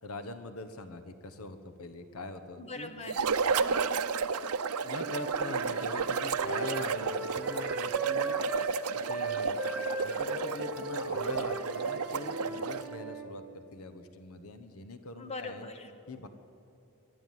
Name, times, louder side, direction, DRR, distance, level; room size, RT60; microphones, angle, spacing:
voice 1, 0.0-2.9 4.8-8.4 8.9-9.6 10.0-15.7 16.1-16.3, left 2 dB, 70° left, 9 dB, 1.1 m, -42 dB
voice 2, 2.6-4.0 15.2-15.9, left 2 dB, 30° left, 7 dB, 1.5 m, -42 dB
sound 1, 3.1-12.9, right 5 dB, 85° right, 0.7 m, -32 dB
Wind instrument woodwind instrument, 4.8-8.8 9.0-13.3, right 3 dB, 5° right, 1.8 m, -38 dB
22.0 x 12.5 x 9.3 m, 3.0 s
head